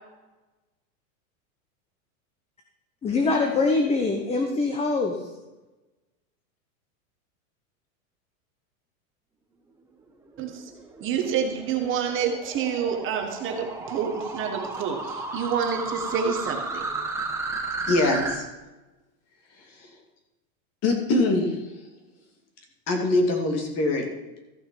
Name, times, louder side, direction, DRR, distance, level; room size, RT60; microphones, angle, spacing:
voice 1, 3.0-5.2, left 3 dB, 15° left, 4 dB, 0.8 m, -23 dB
sound 1, 10.3-18.3, right 3 dB, 5° right, 1.1 m, -34 dB
voice 2, 11.0-16.8, right 7 dB, 30° right, 4 dB, 1.2 m, -28 dB
voice 3, 17.9-18.5 19.8-19.9 20.8-21.6 22.9-24.0, left 2 dB, 35° left, 3 dB, 2.3 m, -23 dB
14.0 x 6.0 x 5.4 m, 1.1 s
supercardioid pair, 140°, 42 cm